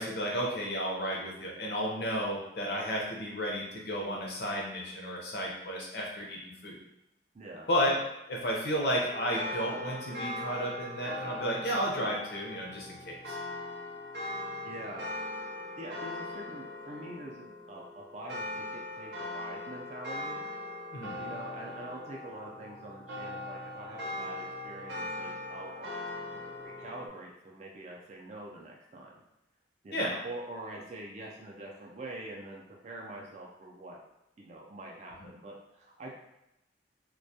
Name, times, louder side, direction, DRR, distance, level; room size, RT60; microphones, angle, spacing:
voice 1, 0.0-6.8 7.7-7.9 8.3-13.4 20.9-21.2 29.9-30.1, equal, 60° left, -2 dB, 0.6 m, -32 dB
voice 2, 7.3-7.7 14.6-15.1 15.8-20.4 21.2-25.9 26.3-29.1 29.8-34.0 34.4-36.2, right 1 dB, 40° right, -2 dB, 0.3 m, -45 dB
sound 1, 9.0-27.1, left 1 dB, 75° right, 0.6 m, -40 dB
2.2 x 2.1 x 2.6 m, 0.88 s
head